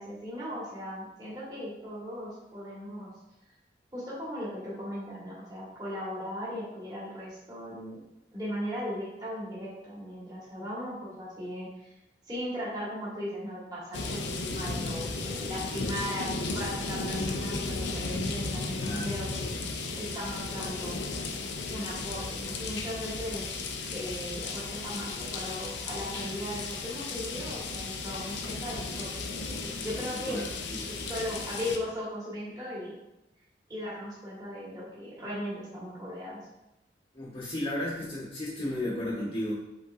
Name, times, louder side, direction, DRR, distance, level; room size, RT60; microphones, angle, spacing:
voice 1, 0.0-3.1 3.9-8.0 8.3-11.9 12.2-19.5 20.0-21.0 21.7-23.5 23.9-30.5 31.0-32.9 33.7-36.4, equal, 20° right, -8 dB, 1.3 m, -38 dB
sound 1, 13.9-31.8, left 3 dB, 70° left, 0.5 m, -35 dB
voice 2, 18.8-19.1 30.2-30.4 30.7-30.8 37.1-39.6, left 1 dB, 35° left, -6 dB, 0.9 m, -33 dB
5.4 x 3.8 x 2.4 m, 0.91 s
head